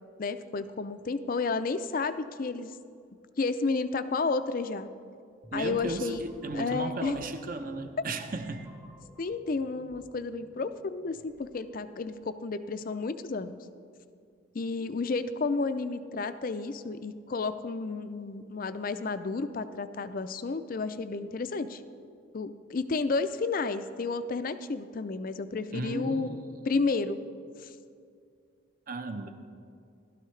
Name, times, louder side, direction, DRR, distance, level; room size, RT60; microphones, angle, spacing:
voice 1, 0.2-2.7 3.4-4.9 5.5-6.2 6.5-7.2 9.2-13.6 14.5-21.8 22.3-26.4 26.6-27.2 27.6-27.7, left 4 dB, 40° left, 11 dB, 0.4 m, -31 dB
sound 1, 5.4-12.3, equal, 5° right, 0.7 m, -54 dB
voice 2, 5.5-8.7 25.7-26.4 28.9-29.3, right 2 dB, 40° right, 7 dB, 0.7 m, -35 dB
16.0 x 12.5 x 3.2 m, 2.4 s
head